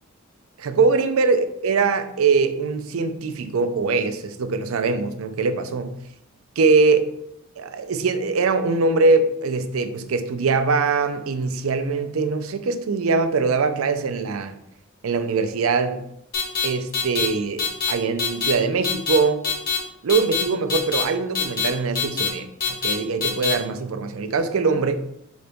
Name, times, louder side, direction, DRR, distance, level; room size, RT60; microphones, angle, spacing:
voice 1, 0.6-5.9 6.6-7.1 7.6-14.6 15.0-16.1 16.6-19.4 20.0-24.9, right 4 dB, 85° right, 9 dB, 0.5 m, -22 dB
sound 1, 16.3-16.7 16.9-17.3 17.6-17.9 18.2-18.5 18.8-19.2 19.4-19.8 20.1-20.4 20.7-21.0 21.3-21.7 22.0-22.3 22.6-22.9 23.2-23.5, left 6 dB, 50° left, 0.9 m, -23 dB
4.0 x 3.8 x 3.4 m, 0.76 s
head